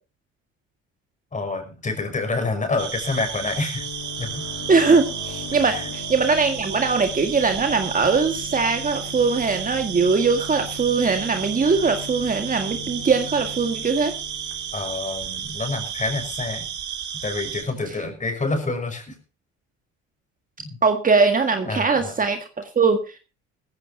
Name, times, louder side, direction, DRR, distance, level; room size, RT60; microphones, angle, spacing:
voice 1, 1.3-3.9 4.2-4.4 5.7-5.9 14.7-16.7 17.2-19.2 20.6-20.8 21.7-22.2, left 3 dB, 25° left, 7 dB, 5.5 m, -27 dB
sound 1, 2.8-17.6, right 8 dB, 65° right, 4.0 m, -33 dB
sound 2, 3.8-15.2, left 5 dB, 55° left, 7.9 m, -39 dB
voice 2, 4.7-14.1 20.8-23.2, right 4 dB, 25° right, 6 dB, 1.8 m, -21 dB
18.0 x 15.0 x 2.8 m, 0.33 s
cardioid pair, 105°, 31 cm